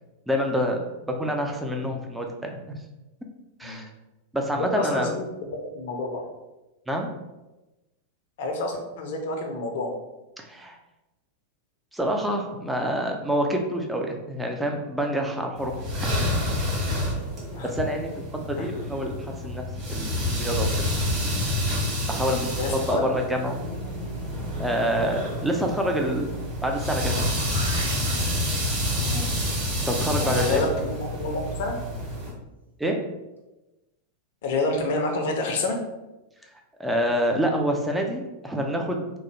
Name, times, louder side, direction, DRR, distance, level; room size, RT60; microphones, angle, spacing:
voice 1, 0.3-2.8 3.6-3.9 4.3-5.1 6.9-7.1 10.4-10.7 11.9-16.1 17.6-19.6 19.9-20.7 21.4-21.6 22.1-22.4 22.7-23.6 24.6-26.3 26.6-27.4 29.9-30.6 32.8-33.0 36.8-39.1, equal, 5° right, 2 dB, 0.4 m, -27 dB
voice 2, 4.5-6.2 8.4-9.9 17.5-17.7 18.6-18.7 22.3-23.0 29.0-29.3 30.2-31.8 34.4-35.8, left 2 dB, 55° left, 2 dB, 0.5 m, -29 dB
sound 1, 15.6-32.3, left 1 dB, 25° right, 1.4 m, -28 dB
sound 2, 26.7-28.2 33.0-33.1, right 2 dB, 80° right, 0.5 m, -38 dB
2.9 x 2.0 x 3.2 m, 1.0 s
figure-of-eight pair, 90°, 0 cm